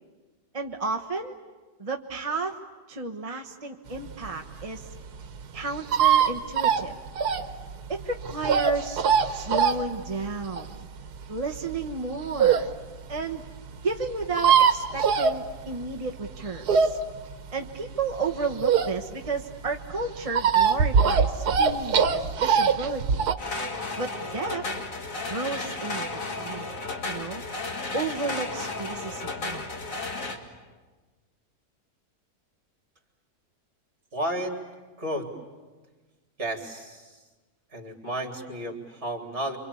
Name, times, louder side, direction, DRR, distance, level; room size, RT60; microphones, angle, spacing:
voice 1, 0.5-1.4 1.8-2.6 2.9-4.9 5.5-7.0 7.9-9.0 9.3-10.9 11.3-12.7 13.1-13.4 13.8-17.0 17.5-23.3 24.0-24.7 25.3-26.1 26.4-26.7 27.1-27.4 27.9-29.7, right 3 dB, 25° right, 1 dB, 1.1 m, -32 dB
sound 1, 4.1-12.7 13.2-13.3 13.5-13.6 13.7-13.8 14.0-15.9 16.2-19.3 19.6-23.3, right 6 dB, 85° right, 1.6 m, -22 dB
sound 2, 23.4-30.4, left 3 dB, 60° left, 2.5 m, -33 dB
voice 2, 34.1-34.6 35.0-35.3 36.4-37.2 37.7-39.6, right 1 dB, 45° right, 2 dB, 3.8 m, -32 dB
28.0 x 25.0 x 8.5 m, 1.3 s
omnidirectional pair, 1.6 m